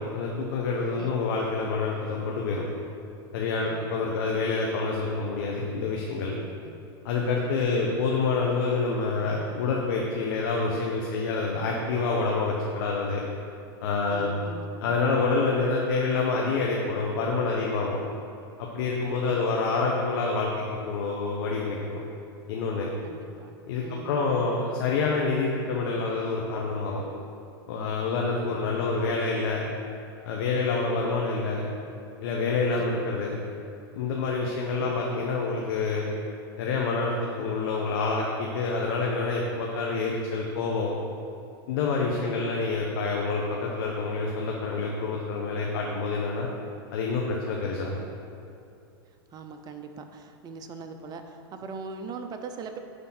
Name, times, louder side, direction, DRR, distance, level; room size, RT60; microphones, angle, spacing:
voice 1, 0.0-2.6 3.3-6.4 7.0-13.2 13.8-14.3 14.8-18.0 18.6-20.5 20.8-22.0 22.5-22.9 23.7-27.0 27.7-29.6 30.2-31.6 32.2-33.4 33.9-36.1 36.6-40.9 41.7-46.5 46.9-48.0, left 4 dB, 65° left, -2 dB, 1.0 m, -27 dB
voice 2, 3.6-4.1 6.6-6.8 7.6-8.0 14.1-14.7 19.2-19.6 23.0-24.5 32.7-32.9 34.8-35.0 42.2-42.5 47.6-47.8 49.3-52.8, right 4 dB, 30° right, 6 dB, 0.7 m, -42 dB
9.6 x 3.8 x 5.8 m, 2.6 s
hypercardioid pair, 110°, 13 cm